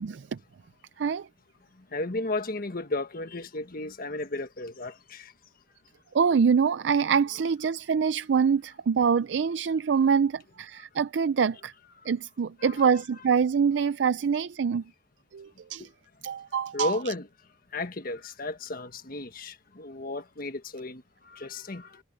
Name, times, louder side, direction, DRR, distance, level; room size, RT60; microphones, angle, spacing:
voice 1, 1.9-5.3 12.6-13.0 16.7-17.3 17.7-22.0, left 2 dB, 55° left, 1.5 m, -34 dB
voice 2, 6.1-11.7 12.1-14.8 15.3-15.9 16.2-16.9, right 6 dB, 80° right, 0.4 m, -25 dB
head